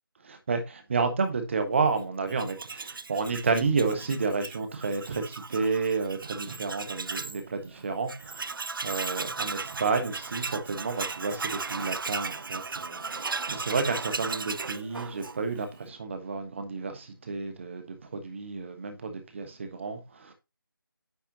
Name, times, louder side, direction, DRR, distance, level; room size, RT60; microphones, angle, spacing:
voice 1, 0.3-8.5 8.8-20.3, right 4 dB, 30° right, 1.2 m, -31 dB
Tools, 2.3-7.4 7.8-7.9 8.1-15.7, right 4 dB, 65° right, 0.4 m, -36 dB
9.3 x 4.2 x 2.8 m
figure-of-eight pair, 160°, 12 cm